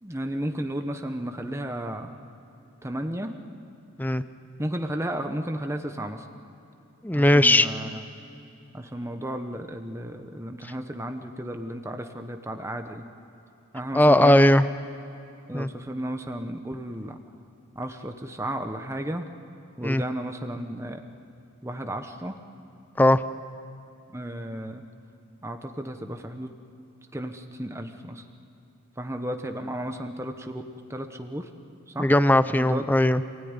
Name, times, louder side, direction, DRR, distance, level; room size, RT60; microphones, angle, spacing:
voice 1, 0.0-2.1 2.8-3.3 4.6-6.3 7.1-8.0 8.7-13.0 13.7-14.4 15.5-17.2 17.7-19.3 19.8-21.0 21.6-22.4 24.1-24.8 25.4-26.5 27.1-28.2 29.0-31.5 31.9-32.1 32.5-32.9, right 1 dB, 10° right, 6 dB, 1.0 m, -33 dB
voice 2, 7.0-7.7 13.9-14.7 15.5-15.7 19.8-20.0 23.0-23.2 32.0-33.2, left 1 dB, 10° left, 13 dB, 0.5 m, -18 dB
27.0 x 17.0 x 9.8 m, 2.8 s
head